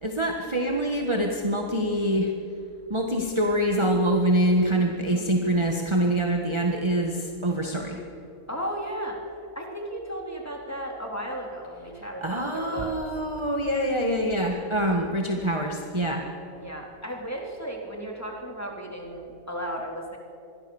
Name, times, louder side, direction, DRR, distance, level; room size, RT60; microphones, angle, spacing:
voice 1, 0.0-2.3 2.9-8.0 12.2-16.2, right 1 dB, 20° right, 1 dB, 1.7 m, -25 dB
voice 2, 5.0-5.4 8.5-9.2 9.5-12.9 16.1-20.2, equal, 10° left, 0 dB, 3.5 m, -35 dB
26.0 x 22.0 x 7.2 m, 2.7 s
omnidirectional pair, 1.5 m